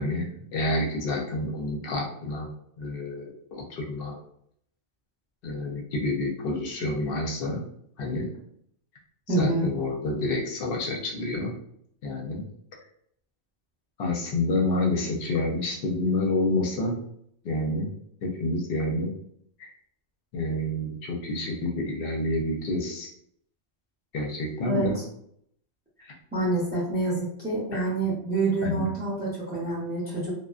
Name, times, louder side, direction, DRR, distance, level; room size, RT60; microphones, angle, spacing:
voice 1, 0.0-2.5 2.8-4.2 5.4-7.6 8.0-8.3 9.4-11.5 12.0-12.4 14.0-17.0 17.4-17.9 18.2-19.1 19.6-19.7 20.3-23.1 24.1-25.0 26.0-26.1 27.7-28.1 28.6-28.9, left 2 dB, 60° left, 0 dB, 0.7 m, -28 dB
voice 2, 9.3-9.7 24.6-24.9 26.3-30.3, right 2 dB, 10° right, -7 dB, 0.6 m, -27 dB
2.5 x 2.1 x 2.3 m, 0.69 s
omnidirectional pair, 1.2 m